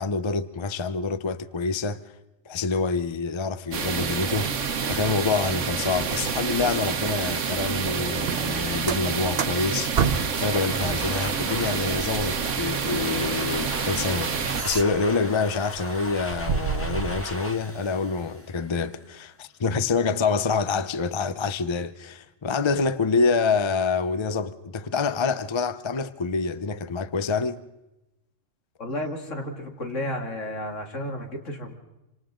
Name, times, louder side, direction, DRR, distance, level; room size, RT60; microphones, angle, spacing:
voice 1, 0.0-2.0 2.5-4.5 4.9-9.9 10.3-27.6, left 4 dB, 30° left, 0.6 m, -26 dB
sound 1, 3.7-14.6, right 6 dB, 75° right, 1.4 m, -28 dB
sound 2, 8.2-10.5 10.8-15.3 15.7-17.2, right 6 dB, 55° right, 1.1 m, -31 dB
Domestic sounds home sounds, 10.1-19.0, left 1 dB, 10° left, 1.6 m, -38 dB
voice 2, 28.8-31.7, left 1 dB, 75° left, 2.8 m, -32 dB
27.0 x 26.5 x 3.8 m
omnidirectional pair, 1.3 m